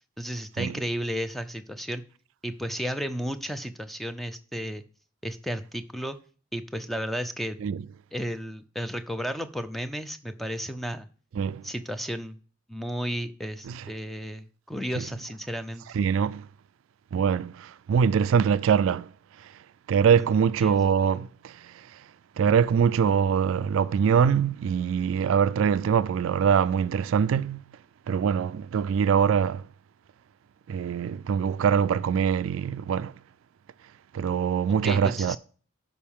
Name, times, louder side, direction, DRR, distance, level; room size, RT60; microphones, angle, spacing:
voice 1, 0.2-2.0 2.4-4.8 5.2-6.2 6.5-7.6 8.1-11.1 11.6-12.4 12.7-15.8 20.2-20.3 20.6-20.8 34.8-35.4, equal, ahead, 0.5 m, -33 dB
voice 2, 15.9-16.5 17.1-19.1 19.4-19.5 19.9-22.0 22.4-27.6 28.1-29.7 30.7-33.1 34.1-35.4, right 7 dB, 65° right, 0.3 m, -23 dB
13.0 x 5.2 x 3.6 m
head